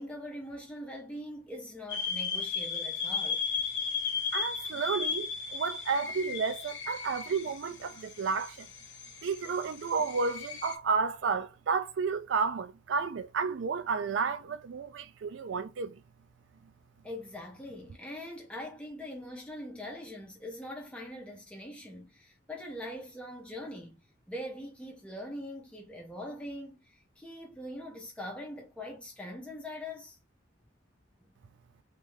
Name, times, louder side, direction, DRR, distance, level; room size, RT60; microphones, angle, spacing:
voice 1, 0.0-3.4 17.0-24.0 24.3-30.2, left 1 dB, 5° left, 1.0 m, -42 dB
sound 1, 1.9-10.8, left 6 dB, 60° left, 0.9 m, -36 dB
voice 2, 4.3-8.7 9.2-16.0, right 5 dB, 65° right, 0.4 m, -31 dB
3.3 x 2.6 x 3.3 m
head